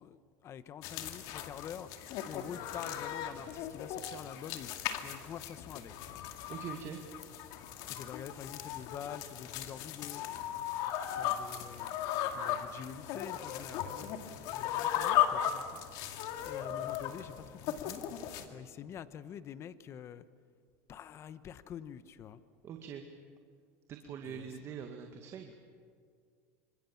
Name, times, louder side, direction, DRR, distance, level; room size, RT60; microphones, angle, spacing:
voice 1, 0.0-4.7 5.0-6.2 7.9-10.2 11.0-11.9 12.3-14.2 14.5-15.8 16.1-20.3 20.9-22.4 24.2-24.5, left 9 dB, 40° left, 14 dB, 1.1 m, -47 dB
sound 1, 0.8-18.5, left 10 dB, 60° left, 2.2 m, -37 dB
voice 2, 6.5-7.0 22.6-23.0 23.9-25.5, right 7 dB, 40° right, 4 dB, 2.0 m, -43 dB
26.5 x 26.0 x 7.3 m, 2.1 s
supercardioid pair, 130°, 7 cm